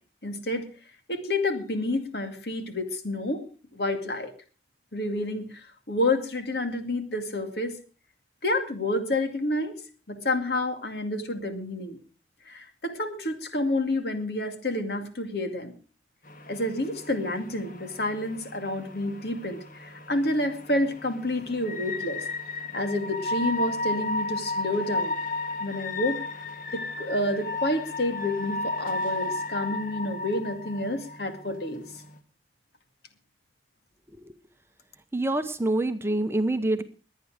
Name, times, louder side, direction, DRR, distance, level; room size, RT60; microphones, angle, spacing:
voice 1, 0.2-0.7 1.1-3.4 3.7-4.3 4.9-7.8 8.4-9.8 10.1-12.0 12.5-15.8 16.5-22.2 22.7-25.2 25.6-26.2 26.7-31.8, left 1 dB, 65° left, 7 dB, 2.4 m, -29 dB
sound 1, 16.3-32.2, left 2 dB, 50° left, 1.5 m, -34 dB
voice 2, 35.1-36.8, right 2 dB, 15° right, 8 dB, 0.9 m, -26 dB
22.0 x 9.2 x 5.0 m, 0.37 s
head